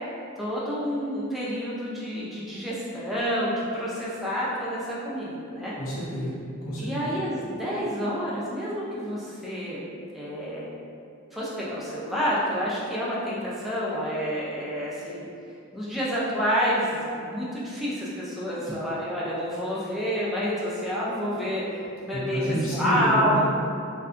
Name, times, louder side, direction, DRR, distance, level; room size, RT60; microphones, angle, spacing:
voice 1, 0.4-5.7 6.8-9.9 10.1-10.7 11.3-15.3 15.7-22.4 22.7-23.4, equal, ahead, -8 dB, 0.4 m, -28 dB
voice 2, 5.8-6.9 22.1-23.4, equal, 80° left, -6 dB, 0.7 m, -29 dB
2.6 x 2.2 x 2.4 m, 2.5 s
head